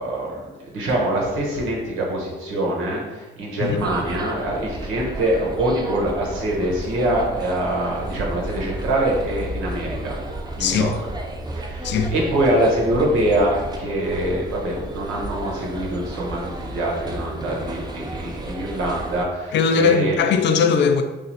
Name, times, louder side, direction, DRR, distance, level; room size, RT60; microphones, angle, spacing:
voice 1, 0.0-10.2 10.6-10.9 11.5-20.2, right 1 dB, 90° right, 1.1 m, -24 dB
sound 1, 3.8-19.2, right 1 dB, 20° right, 0.5 m, -33 dB
voice 2, 10.6-10.9 11.8-12.1 19.5-21.0, left 6 dB, 65° left, 0.4 m, -19 dB
3.2 x 2.6 x 4.1 m
cardioid pair, 90°, 20 cm